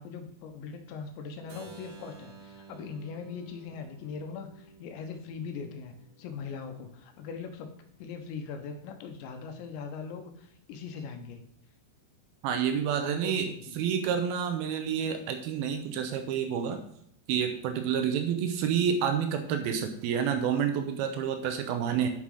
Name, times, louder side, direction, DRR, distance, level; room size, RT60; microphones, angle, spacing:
voice 1, 0.0-7.7 8.0-11.4 13.0-13.8, left 5 dB, 75° left, 6 dB, 3.1 m, -40 dB
Keyboard (musical), 1.5-7.3, right 5 dB, 60° right, 2.6 m, -52 dB
voice 2, 12.4-13.5 13.8-16.8 17.3-22.1, right 8 dB, 80° right, 6 dB, 2.2 m, -29 dB
10.0 x 5.8 x 4.9 m, 0.69 s
omnidirectional pair, 5.5 m